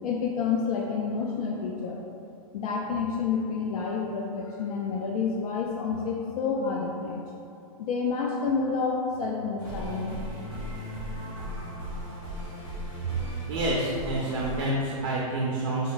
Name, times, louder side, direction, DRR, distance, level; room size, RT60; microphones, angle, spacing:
voice 1, 0.0-2.0 2.5-7.2 7.8-10.2, left 5 dB, 75° left, -1 dB, 0.4 m, -29 dB
sound 1, 9.6-14.7, equal, 15° left, 0.7 m, -36 dB
voice 2, 13.5-15.9, right 1 dB, 40° right, -4 dB, 0.4 m, -28 dB
3.4 x 2.0 x 3.8 m, 2.6 s
hypercardioid pair, 170°, 19 cm